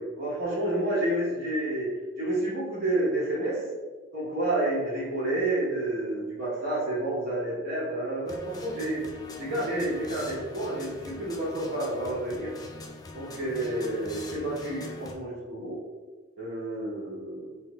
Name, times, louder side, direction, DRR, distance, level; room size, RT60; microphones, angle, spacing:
voice 1, 0.0-1.9 2.2-3.7 4.1-9.0 9.4-12.5 13.1-15.8 16.4-17.6, right 1 dB, 50° right, -7 dB, 1.2 m, -30 dB
sound 1, 8.3-15.1, left 3 dB, 20° left, 0.3 m, -42 dB
3.3 x 2.1 x 4.0 m, 1.3 s
head